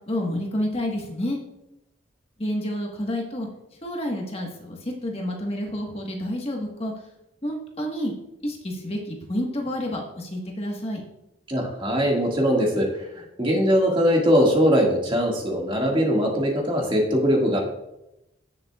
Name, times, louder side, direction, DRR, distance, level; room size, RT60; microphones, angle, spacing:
voice 1, 0.1-1.4 2.4-3.5 3.8-6.9 7.4-8.1 8.4-11.0, equal, 35° left, 0 dB, 1.4 m, -29 dB
voice 2, 11.5-17.6, equal, 30° right, -1 dB, 1.9 m, -21 dB
16.5 x 6.8 x 2.4 m, 0.88 s
head